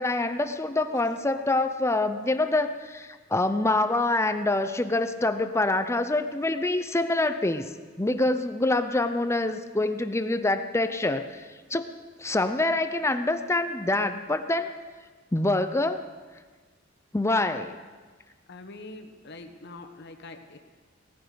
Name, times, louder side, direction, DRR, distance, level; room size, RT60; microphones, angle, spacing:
voice 1, 0.0-7.7 8.0-11.4 11.7-11.9 12.2-14.7 15.3-16.0 17.1-17.8, left 2 dB, 15° left, 9 dB, 0.6 m, -26 dB
voice 2, 18.5-20.6, left 2 dB, 60° left, 5 dB, 1.4 m, -44 dB
18.0 x 14.0 x 5.1 m, 1.4 s
head